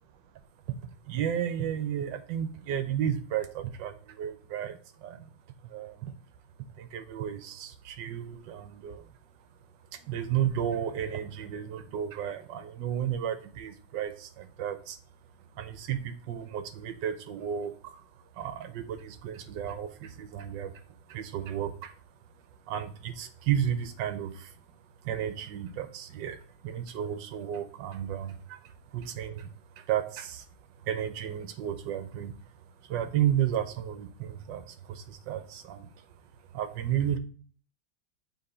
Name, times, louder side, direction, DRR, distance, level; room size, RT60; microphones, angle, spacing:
voice 1, 1.1-5.3 5.6-6.1 6.8-9.1 9.9-15.0 15.6-18.0 18.4-20.8 21.1-21.9 22.7-24.5 25.0-29.5 29.8-30.4 30.8-32.3 32.9-35.9 36.5-37.2, right 9 dB, 75° right, 10 dB, 1.3 m, -33 dB
7.1 x 3.3 x 4.2 m, 0.43 s
omnidirectional pair, 2.1 m